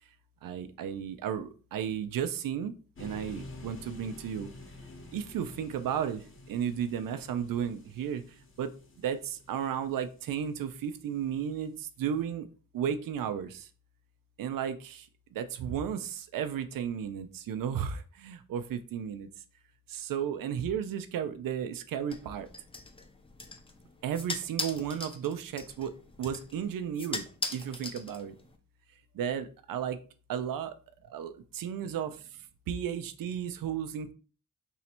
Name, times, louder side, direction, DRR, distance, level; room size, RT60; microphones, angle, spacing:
voice 1, 0.4-2.7 3.0-4.5 5.1-8.2 8.6-8.7 9.0-12.5 12.7-13.7 14.4-19.3 19.9-22.5 24.0-25.9 26.2-27.2 27.5-28.3 29.1-30.0 30.3-30.8 31.0-32.2 32.7-34.1, right 8 dB, 80° right, 10 dB, 0.5 m, -34 dB
sound 1, 3.0-11.0, left 2 dB, 40° left, 0.9 m, -49 dB
sound 2, 22.1-28.6, left 3 dB, 15° left, 0.5 m, -41 dB
3.1 x 2.7 x 4.2 m, 0.37 s
wide cardioid pair, 115°, 33 cm